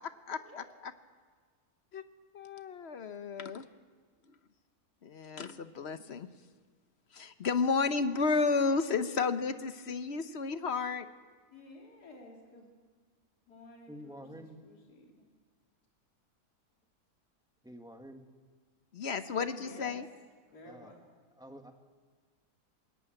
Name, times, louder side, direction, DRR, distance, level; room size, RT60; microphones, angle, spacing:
voice 1, 0.3-0.6 1.9-2.0 2.3-3.6 5.0-6.3 7.1-11.1 18.9-20.1, left 4 dB, 50° left, 11 dB, 1.0 m, -32 dB
voice 2, 11.5-12.8 13.5-15.2 19.3-20.0 20.5-21.0, left 2 dB, 80° left, 0 dB, 3.3 m, -53 dB
voice 3, 13.9-14.6 17.6-18.3 20.6-20.9 21.3-21.7, equal, 5° right, 4 dB, 1.4 m, -48 dB
21.0 x 17.5 x 9.0 m, 1.5 s
omnidirectional pair, 1.6 m